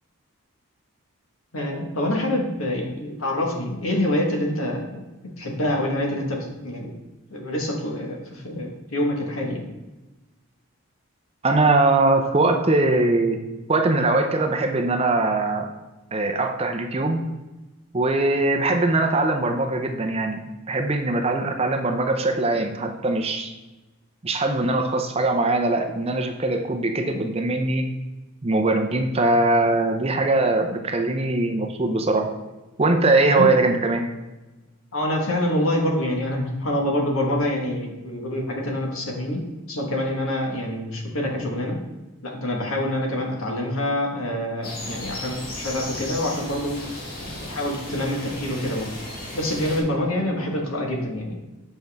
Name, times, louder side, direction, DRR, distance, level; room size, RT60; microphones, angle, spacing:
voice 1, 1.5-5.0 5.4-6.4 6.6-6.9 7.3-9.6 33.3-33.5 34.9-39.4 39.7-41.8 42.2-48.9 49.3-51.4, left 1 dB, 70° left, 0 dB, 1.5 m, -26 dB
voice 2, 11.4-15.7 16.1-17.2 17.9-20.4 20.7-23.5 24.2-27.9 28.4-32.3 32.8-34.1, right 2 dB, 25° right, 4 dB, 0.5 m, -21 dB
sound 1, 44.6-49.8, left 1 dB, 40° left, 1.6 m, -35 dB
7.4 x 5.3 x 3.5 m, 1.1 s
head